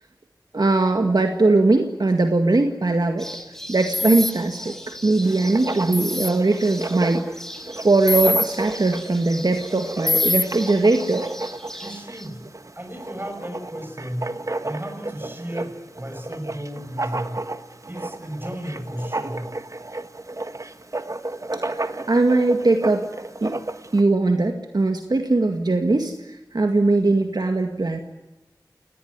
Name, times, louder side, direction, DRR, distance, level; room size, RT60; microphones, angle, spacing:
voice 1, 0.5-3.3 3.7-7.3 7.8-11.3 21.5-21.6 22.1-23.1 23.4-23.5 23.9-28.0, right 2 dB, 70° right, 5 dB, 2.1 m, -20 dB
sound 1, 3.2-12.3, equal, 5° left, 5.7 m, -39 dB
sound 2, 3.9-4.3 5.9-6.3 8.1-8.5 10.1-10.4, left 2 dB, 60° left, 1.6 m, -22 dB
Writing, 5.2-24.0, right 2 dB, 50° right, 1.5 m, -33 dB
voice 2, 11.8-12.5 12.7-14.3 14.6-17.5 17.9-19.5, equal, 30° right, 6 dB, 6.6 m, -34 dB
29.5 x 19.0 x 9.6 m, 0.98 s
wide cardioid pair, 55°, 7 cm